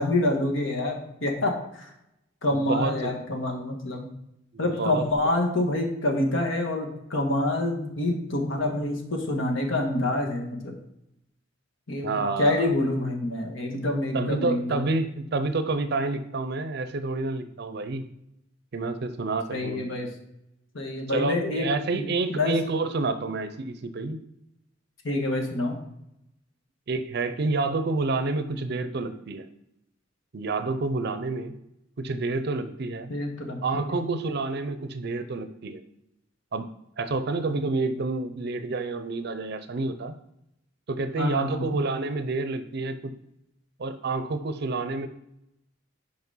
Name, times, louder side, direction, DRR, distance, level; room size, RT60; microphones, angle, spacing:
voice 1, 0.0-1.9 2.4-4.1 4.6-10.7 11.9-12.1 12.4-14.8 19.5-20.1 20.7-21.6 21.9-22.5 25.0-25.8 33.1-34.0 41.1-41.7, left 1 dB, 75° left, 2 dB, 1.4 m, -27 dB
voice 2, 2.5-3.1 4.5-5.1 12.0-12.7 14.1-18.1 18.7-19.9 21.1-24.2 26.9-29.5 30.3-31.5 32.0-33.1 33.6-35.8 36.5-36.7 37.0-40.1 40.9-43.1 43.8-45.1, right 3 dB, 55° right, 10 dB, 0.5 m, -29 dB
5.9 x 5.0 x 5.5 m, 0.81 s
head